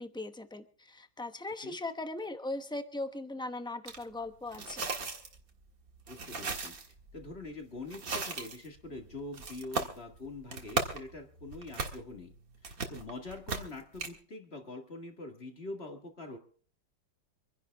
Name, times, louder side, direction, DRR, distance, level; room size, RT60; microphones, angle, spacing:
voice 1, 0.0-4.8, left 2 dB, 5° left, 8 dB, 0.3 m, -39 dB
sound 1, 3.9-4.0 4.5-14.1, right 4 dB, 50° right, 2.1 m, -38 dB
voice 2, 6.1-6.8 7.1-12.3 12.6-16.4, left 2 dB, 35° left, 4 dB, 2.0 m, -44 dB
26.0 x 11.0 x 3.5 m, 0.44 s
omnidirectional pair, 2.0 m